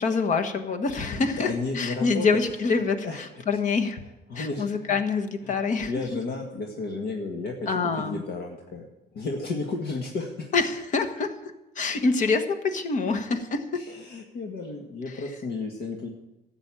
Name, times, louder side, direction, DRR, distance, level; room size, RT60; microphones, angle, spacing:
voice 1, 0.0-4.0 4.3-5.9 7.7-8.2 10.5-13.6, left 4 dB, 50° left, 7 dB, 1.4 m, -26 dB
voice 2, 1.1-2.3 3.0-3.6 4.3-5.0 5.4-5.6 5.9-8.9 9.1-10.5 13.7-16.1, left 3 dB, 65° left, 1 dB, 1.8 m, -33 dB
13.0 x 7.9 x 8.8 m, 0.98 s
cardioid pair, 110°, 17 cm